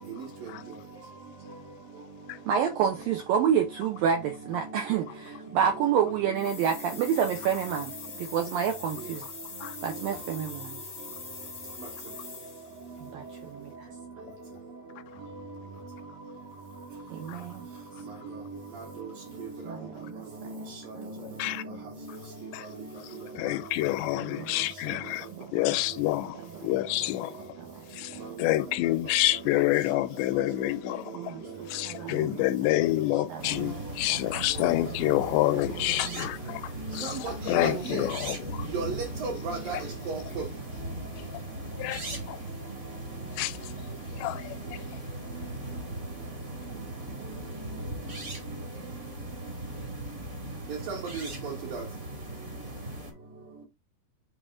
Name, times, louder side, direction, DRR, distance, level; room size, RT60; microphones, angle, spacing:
voice 1, 2.5-9.3 9.8-10.8 13.0-13.9 17.1-17.7 19.7-20.3 21.0-21.4 27.8-27.9 31.1-32.2 33.3-33.8 34.3-34.7, right 8 dB, 80° right, 2.1 m, -29 dB
sound 1, 6.4-12.8, left 5 dB, 50° left, 1.0 m, -43 dB
voice 2, 18.0-18.6 19.4-19.7 20.1-20.2 20.4-20.7 21.0-21.2 21.5-21.8 34.6-34.7 36.8-38.1 38.7-39.8 40.1-40.5 50.7-51.8, right 4 dB, 65° right, 2.6 m, -35 dB
voice 3, 21.2-21.6 22.1-22.2 22.5-22.7 23.0-27.5 27.9-38.7 39.7-39.8 41.2-41.3 41.8-42.4 43.3-43.6 44.2-44.8, left 17 dB, 85° left, 2.7 m, -28 dB
sound 2, 33.4-53.1, right 1 dB, 35° right, 1.2 m, -39 dB
7.7 x 3.6 x 3.7 m
omnidirectional pair, 5.1 m